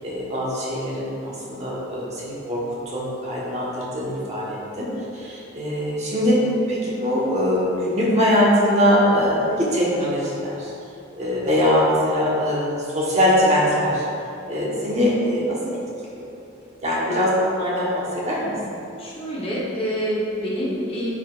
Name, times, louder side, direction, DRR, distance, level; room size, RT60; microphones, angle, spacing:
voice 1, 0.0-4.9 5.1-10.7 11.2-14.0 14.5-15.6 16.1-16.3 16.8-18.5, equal, 35° right, -6 dB, 1.3 m, -22 dB
voice 2, 19.0-21.1, equal, 30° left, -6 dB, 1.1 m, -26 dB
10.0 x 4.9 x 2.5 m, 2.7 s
head